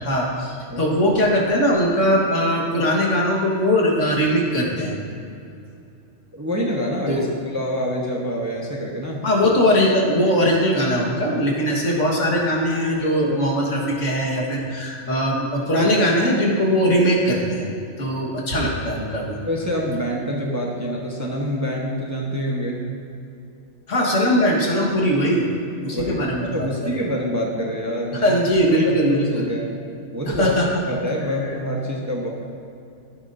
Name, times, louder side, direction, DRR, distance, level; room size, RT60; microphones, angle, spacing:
voice 1, 0.0-5.0 7.1-7.3 9.2-19.4 23.9-25.5 25.8-26.7 28.1-29.5 30.3-30.7, equal, 70° left, -2 dB, 2.0 m, -20 dB
voice 2, 6.3-9.2 19.4-22.8 25.9-26.2 26.5-28.3 28.8-29.7 30.1-30.5 30.9-32.3, equal, 15° right, -3 dB, 1.1 m, -26 dB
13.5 x 11.0 x 2.7 m, 2.7 s
omnidirectional pair, 1.3 m